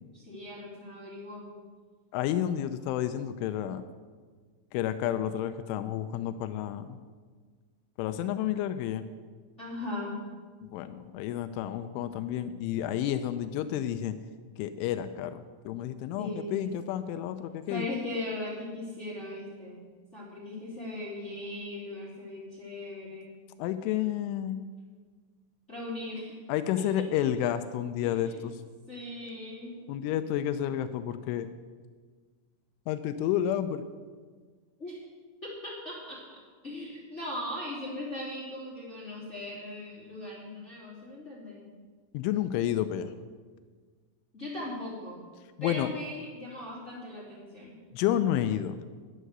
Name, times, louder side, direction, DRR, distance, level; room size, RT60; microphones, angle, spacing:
voice 1, 0.1-1.5 9.6-10.2 16.2-16.7 17.7-19.8 20.1-23.3 25.7-26.4 28.0-28.4 28.9-29.9 34.8-35.0 35.4-36.4 36.6-41.6 44.3-45.2 45.6-47.8, left 1 dB, 20° left, -6 dB, 2.5 m, -39 dB
voice 2, 2.1-3.8 4.7-7.0 8.0-9.1 10.6-14.2 14.6-17.9 23.6-24.6 26.5-28.6 29.9-31.5 32.9-33.9 42.1-43.1 45.6-45.9 47.9-48.8, left 11 dB, 90° left, 10 dB, 3.1 m, -30 dB
11.0 x 11.0 x 6.7 m, 1.5 s
omnidirectional pair, 5.4 m